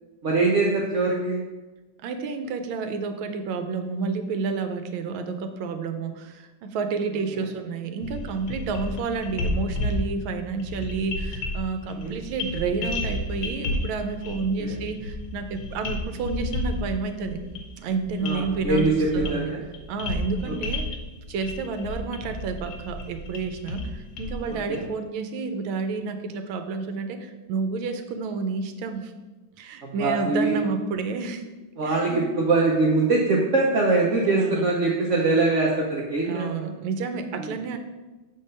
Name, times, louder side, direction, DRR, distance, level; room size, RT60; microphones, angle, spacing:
voice 1, 0.2-1.4 11.9-12.2 14.6-14.8 18.2-19.6 24.5-24.8 29.8-30.6 31.8-36.7 37.4-37.5, right 3 dB, 55° right, -2 dB, 0.8 m, -23 dB
voice 2, 2.0-17.4 17.8-18.9 19.1-19.6 19.9-20.9 21.3-29.1 29.6-31.4 31.8-32.3 34.2-34.7 36.2-37.8, right 4 dB, 85° right, 8 dB, 1.5 m, -30 dB
sound 1, 8.0-24.8, left 1 dB, 75° left, 1.8 m, -32 dB
7.6 x 3.7 x 5.3 m, 1.2 s
omnidirectional pair, 2.2 m